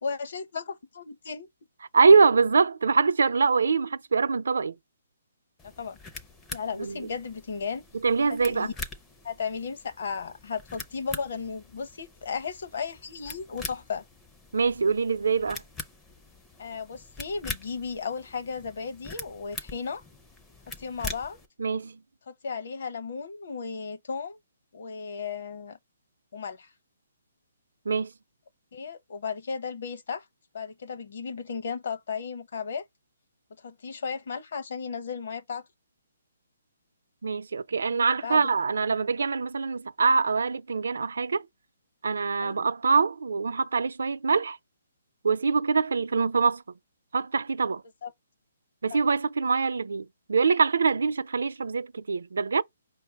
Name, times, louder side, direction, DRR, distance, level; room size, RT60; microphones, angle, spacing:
voice 1, 0.0-1.5 5.6-6.0 6.5-7.8 8.3-8.7 9.2-14.0 16.6-20.0 20.7-21.4 22.3-24.4 24.7-25.8 26.3-26.7 28.7-30.3 30.5-32.8 33.6-35.7 37.9-38.5 42.4-42.6 48.0-48.1 48.9-49.0, left 5 dB, 50° left, 0.8 m, -35 dB
voice 2, 1.9-4.8 6.8-6.9 8.0-8.7 14.5-15.6 21.6-22.0 27.9-28.1 37.2-41.4 42.0-44.6 45.2-46.6 47.1-47.8 48.8-52.6, right 4 dB, 85° right, 0.5 m, -24 dB
sound 1, 5.6-21.5, left 3 dB, 10° left, 0.4 m, -43 dB
5.3 x 2.1 x 4.5 m
hypercardioid pair, 175°, 0 cm